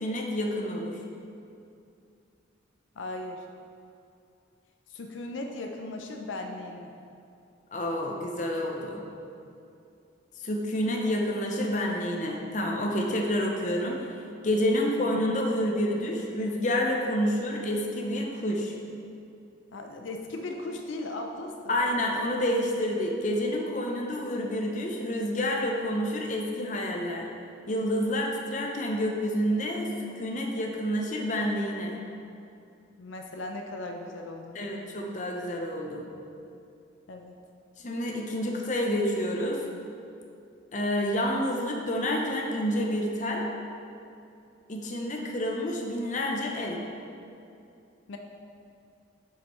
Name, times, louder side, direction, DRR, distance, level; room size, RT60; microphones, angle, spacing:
voice 1, 0.0-1.0 7.7-9.0 10.4-14.0 14.4-18.7 21.7-27.3 27.7-32.0 34.5-36.1 37.8-39.6 40.7-43.4 44.7-46.8, equal, 40° left, 0 dB, 0.6 m, -28 dB
voice 2, 3.0-3.5 4.9-6.9 19.7-21.7 33.0-34.7 37.1-37.4 48.1-48.2, left 2 dB, 80° left, 3 dB, 0.5 m, -37 dB
7.8 x 5.2 x 3.1 m, 2.6 s
head